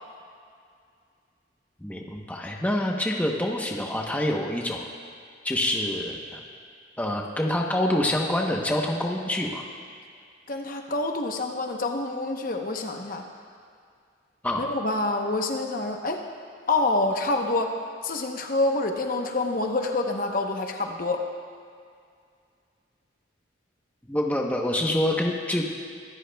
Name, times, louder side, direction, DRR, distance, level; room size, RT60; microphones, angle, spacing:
voice 1, 1.8-4.9 5.4-6.4 7.0-9.6 14.4-14.7 24.0-25.7, left 1 dB, 10° left, 0 dB, 0.9 m, -26 dB
voice 2, 10.5-13.2 14.6-16.2 16.7-17.8 18.0-21.3, left 2 dB, 45° left, 3 dB, 0.9 m, -27 dB
24.0 x 13.5 x 2.3 m, 2.2 s
head